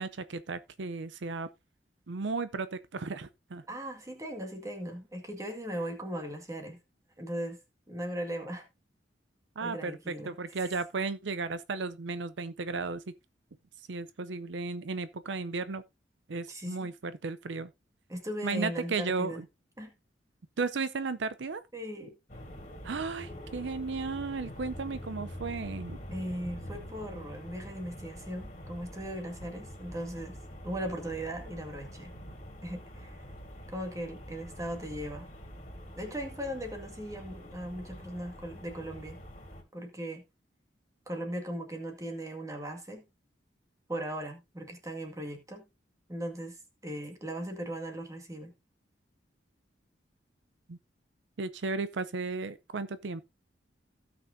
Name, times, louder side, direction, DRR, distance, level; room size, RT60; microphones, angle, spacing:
voice 1, 0.0-1.5 2.1-3.6 9.6-13.0 13.8-15.8 16.3-17.7 18.4-19.5 20.6-21.6 22.8-26.0 50.7-50.8 51.4-53.2, right 4 dB, 75° right, 0.6 m, -34 dB
voice 2, 3.7-6.8 7.2-7.6 7.9-8.7 9.6-10.3 16.5-16.9 18.1-19.4 19.8-19.9 21.7-22.2 26.1-30.4 30.6-32.1 32.6-33.3 33.7-35.3 36.0-39.2 39.7-40.2 41.1-43.1 43.9-45.7 46.1-48.5, right 1 dB, 15° right, 1.9 m, -38 dB
sound 1, 22.3-39.6, equal, 40° left, 3.0 m, -45 dB
16.5 x 6.1 x 2.6 m
head